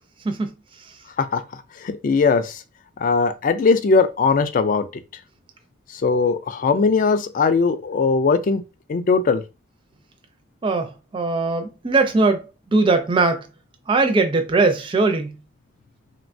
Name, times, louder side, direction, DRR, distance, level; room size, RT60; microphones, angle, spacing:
voice 1, 1.8-2.6 3.0-4.9 6.0-8.6 8.9-9.4, left 4 dB, 40° left, 0.3 m, -19 dB
voice 2, 11.1-12.4 12.7-13.4 13.9-15.4, right 3 dB, 25° right, 0.4 m, -19 dB
2.9 x 2.2 x 2.5 m
head